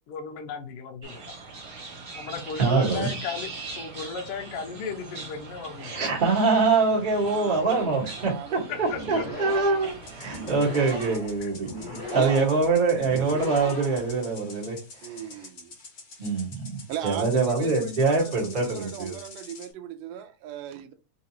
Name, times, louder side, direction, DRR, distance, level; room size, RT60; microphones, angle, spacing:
voice 1, 0.1-1.3 2.2-3.5 3.8-6.0 8.7-9.2 11.4-11.5, left 6 dB, 85° left, 1.2 m, -35 dB
sound 1, 1.0-11.2, right 3 dB, 55° right, 1.6 m, -41 dB
voice 2, 2.6-3.1 5.8-15.2 16.2-19.1, right 4 dB, 30° right, 1.0 m, -24 dB
voice 3, 7.2-8.9 9.3-9.5 12.1-12.4 15.0-15.7 16.9-20.9, right 9 dB, 75° right, 1.5 m, -37 dB
sound 2, 8.8-14.6, left 1 dB, 40° left, 0.5 m, -38 dB
sound 3, 10.0-19.7, left 3 dB, 65° left, 0.8 m, -47 dB
3.9 x 3.8 x 2.9 m
omnidirectional pair, 3.4 m